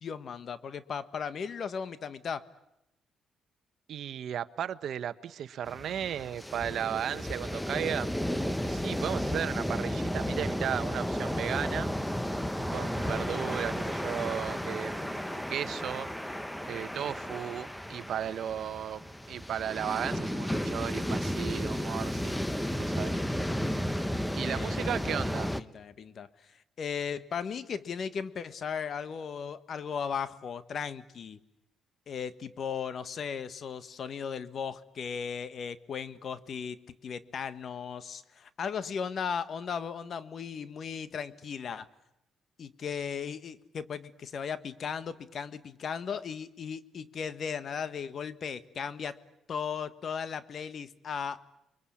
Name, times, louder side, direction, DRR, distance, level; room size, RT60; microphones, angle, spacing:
voice 1, 0.0-2.4 24.4-25.3 25.6-31.4 32.1-41.9 42.6-49.2 49.5-51.4, left 6 dB, 55° left, 13 dB, 1.4 m, -37 dB
voice 2, 3.9-8.2 8.6-11.9 12.7-16.1 16.6-22.4 22.8-23.2 24.3-25.5, right 9 dB, 70° right, 14 dB, 1.0 m, -35 dB
sound 1, 5.7-25.6, equal, 5° left, 1.1 m, -33 dB
29.0 x 23.0 x 8.6 m, 0.84 s
cardioid pair, 90°, 0 cm